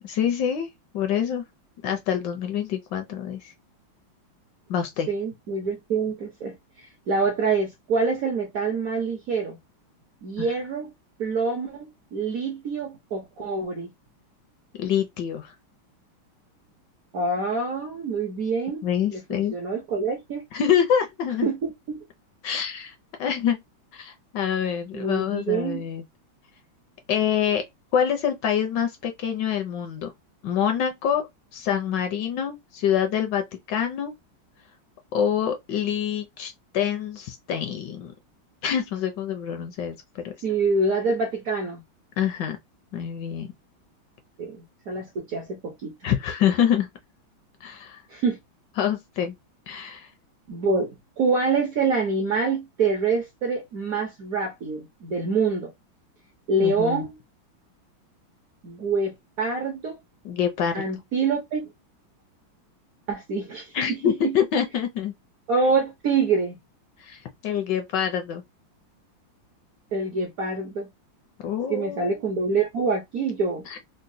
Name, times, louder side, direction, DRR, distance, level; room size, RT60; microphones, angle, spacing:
voice 1, 0.0-0.7 0.9-1.4 1.8-3.5 4.7-5.1 10.4-10.5 14.8-15.5 18.8-19.6 20.5-21.5 22.4-22.9 23.2-23.6 23.9-26.0 27.1-27.7 27.9-30.1 30.4-31.3 31.5-34.1 35.1-38.1 38.6-40.3 42.2-42.6 42.9-43.5 46.0-46.9 47.6-48.0 48.8-49.3 49.7-50.1 56.6-57.1 60.2-60.8 63.7-65.1 67.0-68.4 71.4-72.2 73.7-73.8, left 8 dB, 70° left, 1.1 m, -26 dB
voice 2, 5.1-9.6 10.2-10.9 11.2-13.9 17.1-18.8 19.1-20.4 21.4-21.6 21.9-22.0 24.9-25.8 40.4-41.8 44.4-45.9 48.1-48.4 50.5-55.7 56.5-57.2 58.6-60.0 60.7-61.6 63.1-64.4 65.5-66.6 69.9-70.9 71.7-73.6, right 4 dB, 65° right, 0.8 m, -26 dB
3.9 x 2.1 x 2.6 m
omnidirectional pair, 2.2 m